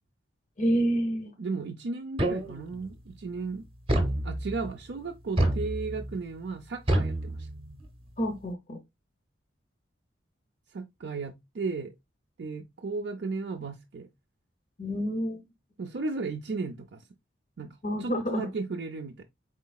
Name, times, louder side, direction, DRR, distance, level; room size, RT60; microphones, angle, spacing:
voice 1, 0.6-1.3 8.2-8.8 14.8-15.4 17.8-18.5, equal, 40° left, 0.6 m, -28 dB
voice 2, 1.4-3.6 4.2-7.5 10.7-11.9 12.4-14.1 15.8-17.0 17.6-19.2, right 4 dB, 65° right, 0.5 m, -35 dB
sound 1, 2.2-2.9 3.9-4.7 5.4-6.2 6.9-7.9, right 1 dB, 30° right, 0.7 m, -28 dB
4.3 x 3.9 x 2.3 m
head